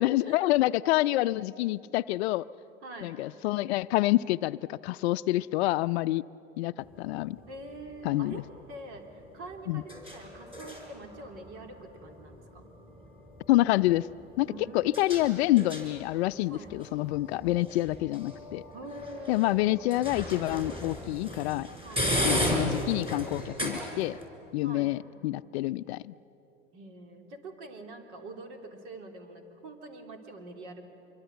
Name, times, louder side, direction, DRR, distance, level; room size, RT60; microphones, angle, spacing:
voice 1, 0.0-2.5 3.0-6.2 6.6-7.4 8.0-8.4 9.7-9.8 13.5-14.1 14.4-14.5 14.7-18.6 19.3-21.7 22.2-24.2 24.5-26.1, left 17 dB, 55° left, 15 dB, 0.5 m, -27 dB
voice 2, 2.8-3.2 7.5-9.1 9.3-12.7 14.5-15.1 16.5-16.7 18.7-20.0 21.8-22.2 24.6-24.9 26.7-30.8, right 2 dB, 60° right, 4 dB, 3.2 m, -45 dB
sound 1, 6.8-24.2, equal, 15° right, 5.7 m, -37 dB
25.0 x 23.5 x 8.1 m, 3.0 s
hypercardioid pair, 95°, 39 cm